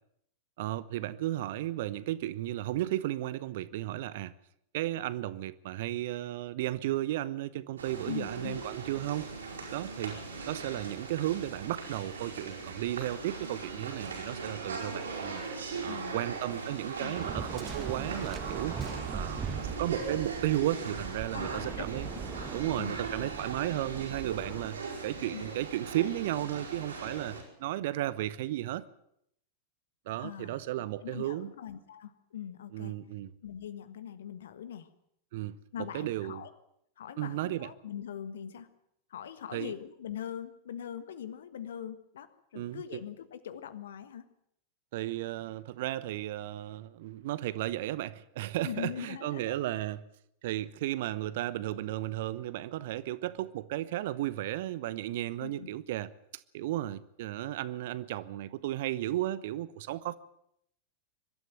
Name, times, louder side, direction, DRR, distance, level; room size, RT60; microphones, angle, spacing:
voice 1, 0.6-4.3 4.7-9.3 9.7-10.2 10.5-15.4 15.8-22.1 22.5-28.8 30.1-31.5 32.7-33.3 35.3-36.4 37.2-37.7 39.5-39.7 42.5-43.0 44.9-50.0 50.4-60.2, right 14 dB, 55° right, 0.9 m, -34 dB
sound 1, 7.8-27.4, right 4 dB, 70° right, 5.0 m, -40 dB
voice 2, 8.0-8.6 15.8-16.2 17.0-17.1 21.3-21.9 22.8-23.3 25.3-25.4 30.2-30.6 31.0-32.9 33.4-34.9 35.7-36.5 37.0-38.7 39.1-44.2 48.6-49.5 55.4-55.7, left 9 dB, 60° left, 1.5 m, -41 dB
Waves surf, 17.1-24.8, right 6 dB, 20° right, 1.6 m, -40 dB
23.0 x 12.5 x 9.1 m
figure-of-eight pair, 90°, 0 cm